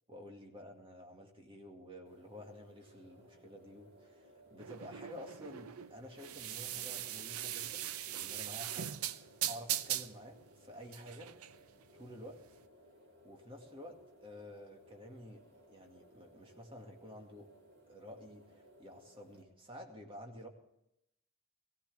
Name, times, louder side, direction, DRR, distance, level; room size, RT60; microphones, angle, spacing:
voice 1, 0.1-11.3 11.9-12.4 13.2-17.5 17.9-20.5, equal, 25° right, 2 dB, 2.1 m, -51 dB
sound 1, 2.1-19.4, equal, 50° right, 4.5 m, -62 dB
sound 2, 4.6-12.6, right 11 dB, 80° right, 0.6 m, -40 dB
19.5 x 16.0 x 3.5 m, 0.82 s
head